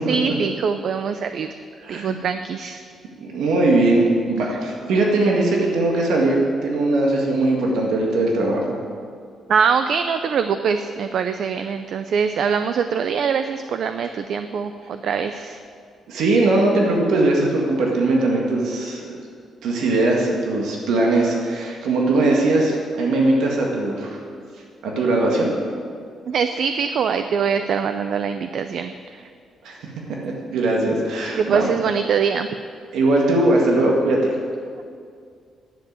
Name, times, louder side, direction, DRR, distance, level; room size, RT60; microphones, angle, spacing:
voice 1, 0.1-1.5 1.9-2.8 9.5-15.6 26.3-29.2 31.4-32.5, right 6 dB, 55° right, 9 dB, 0.4 m, -23 dB
voice 2, 1.8-2.2 3.2-8.6 16.1-19.0 19.6-24.2 24.8-25.5 29.6-29.8 30.2-31.7 32.9-34.3, right 2 dB, 85° right, -1 dB, 1.9 m, -20 dB
10.5 x 7.7 x 8.7 m, 2.2 s
cardioid pair, 170°, 0 cm